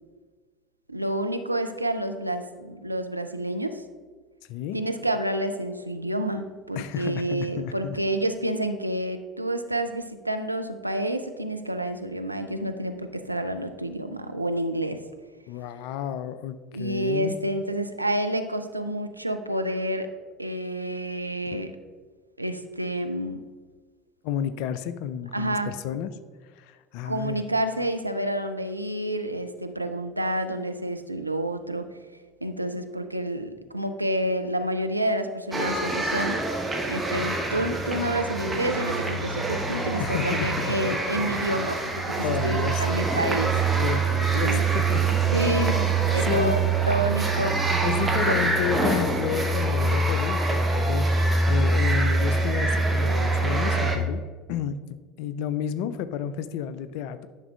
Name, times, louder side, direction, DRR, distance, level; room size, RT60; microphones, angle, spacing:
voice 1, 0.9-3.8 4.7-15.0 16.7-20.1 20.4-21.8 22.4-23.4 25.3-25.7 27.0-32.0 32.4-36.4 36.9-43.6 44.3-44.6 45.3-45.8 46.1-47.6 48.2-48.5, right 1 dB, 85° right, 7 dB, 0.3 m, -29 dB
voice 2, 6.8-8.0 15.5-17.4 21.5-21.6 24.2-26.1 26.6-27.4 40.0-41.2 42.2-42.8 43.8-45.2 45.5-46.8 47.8-54.2 54.5-57.3, left 9 dB, 55° left, 13 dB, 0.3 m, -31 dB
sound 1, 35.5-54.0, right 3 dB, 15° right, 0.9 m, -24 dB
10.5 x 5.9 x 2.3 m, 1.5 s
figure-of-eight pair, 65°, 0 cm